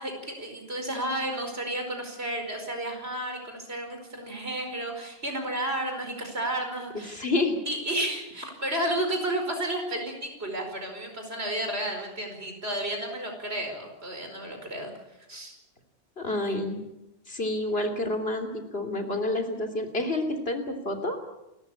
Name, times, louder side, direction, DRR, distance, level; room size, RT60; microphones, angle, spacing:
voice 1, 0.0-7.3 7.7-14.9 15.3-15.5, right 1 dB, 85° right, 4 dB, 5.3 m, -32 dB
voice 2, 7.1-7.6 16.2-16.8 17.3-21.2, left 2 dB, 75° left, 4 dB, 3.4 m, -29 dB
28.5 x 13.5 x 8.4 m, 0.90 s
omnidirectional pair, 1.0 m